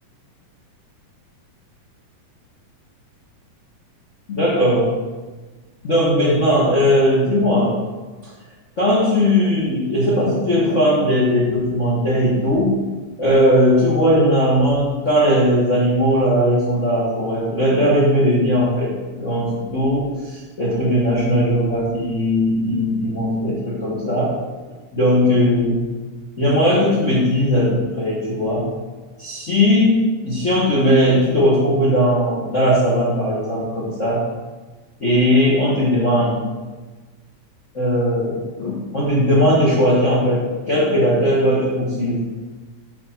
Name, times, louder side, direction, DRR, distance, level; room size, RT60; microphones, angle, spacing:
voice 1, 4.3-4.9 5.8-7.7 8.8-12.7 13.2-18.9 19.2-24.3 24.9-25.8 26.4-28.7 29.2-34.2 35.0-36.4 37.7-42.2, equal, 65° left, -6 dB, 0.7 m, -18 dB
8.3 x 4.8 x 4.4 m, 1.3 s
omnidirectional pair, 3.5 m